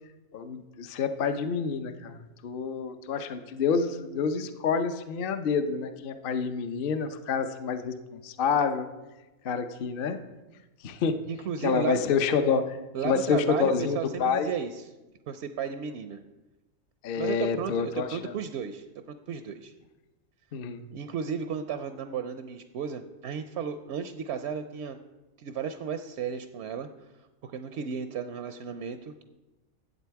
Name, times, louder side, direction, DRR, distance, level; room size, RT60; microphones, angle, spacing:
voice 1, 0.3-8.9 9.4-10.2 10.8-11.2 11.6-12.8 13.0-14.5 17.0-18.3 20.5-20.8, left 5 dB, 55° left, 9 dB, 0.7 m, -28 dB
voice 2, 11.3-12.0 12.9-14.9 15.3-16.2 17.2-19.7 20.9-25.0 25.4-26.9 27.4-29.2, right 7 dB, 65° right, 9 dB, 0.7 m, -34 dB
11.0 x 7.9 x 4.6 m, 1.1 s
omnidirectional pair, 1.5 m